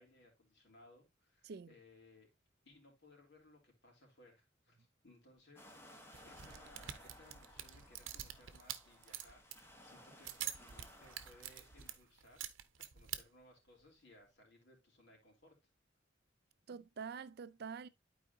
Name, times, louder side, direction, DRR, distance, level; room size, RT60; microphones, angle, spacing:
voice 1, 0.0-2.3 2.6-12.5 12.8-15.6, left 1 dB, 60° left, 3.5 m, -64 dB
sound 1, 5.6-12.0, left 1 dB, 15° left, 1.2 m, -59 dB
sound 2, 6.1-9.6 10.2-13.2, right 11 dB, 90° right, 0.8 m, -46 dB
voice 2, 16.7-17.9, right 6 dB, 55° right, 0.4 m, -46 dB
11.5 x 4.8 x 2.7 m
head